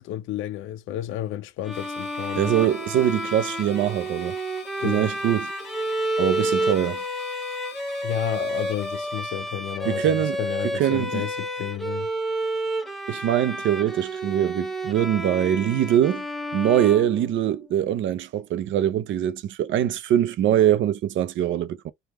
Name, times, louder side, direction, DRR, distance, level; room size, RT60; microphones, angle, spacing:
voice 1, 0.0-2.7 4.8-5.1 8.0-12.1, left 12 dB, 90° left, 0.4 m, -32 dB
Bowed string instrument, 1.6-17.7, right 1 dB, ahead, 0.6 m, -30 dB
sound 1, 1.7-9.2, left 7 dB, 60° left, 0.7 m, -44 dB
voice 2, 2.3-4.4 4.8-5.5 6.2-7.0 9.9-10.4 10.7-11.3 13.1-16.2 16.5-21.9, right 10 dB, 75° right, 0.5 m, -23 dB
3.5 x 2.2 x 2.9 m
cardioid pair, 90°, 20 cm